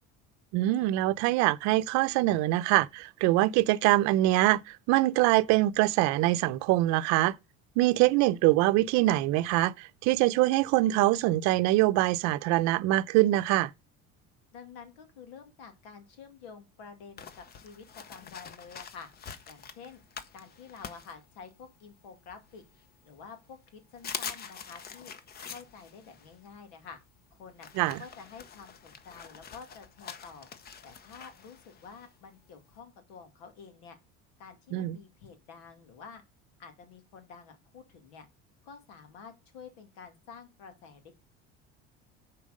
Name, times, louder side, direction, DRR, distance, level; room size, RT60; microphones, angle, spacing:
voice 1, 0.5-7.4 7.8-13.7 27.8-28.0 34.7-35.0, right 17 dB, 70° right, 0.6 m, -24 dB
voice 2, 14.5-19.1 19.5-20.0 20.3-22.6 23.0-25.1 25.4-27.0 27.3-27.7 28.0-30.5 30.8-34.0 34.4-36.2 36.6-38.3 38.6-41.1, left 6 dB, 90° left, 2.3 m, -49 dB
sound 1, 17.2-21.8 22.3-23.2 23.6-23.7 23.9-32.8, left 6 dB, 30° left, 0.8 m, -45 dB
7.2 x 4.6 x 6.5 m
cardioid pair, 130°, 30 cm